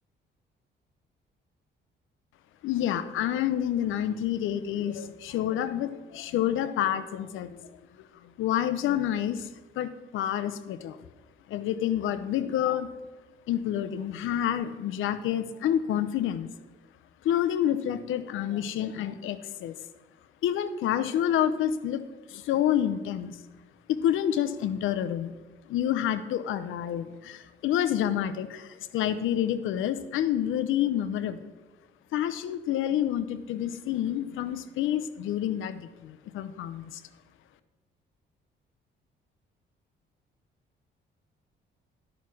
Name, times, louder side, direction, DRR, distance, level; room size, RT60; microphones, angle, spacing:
voice 1, 2.6-7.6 8.0-8.1 8.4-9.5 9.8-11.0 11.5-12.9 13.5-16.5 17.2-19.7 20.4-22.0 22.3-23.4 23.9-25.4 25.7-31.4 32.1-37.0, left 10 dB, 85° left, 12 dB, 0.7 m, -28 dB
11.5 x 6.0 x 6.2 m, 1.2 s
cardioid pair, 90°, 20 cm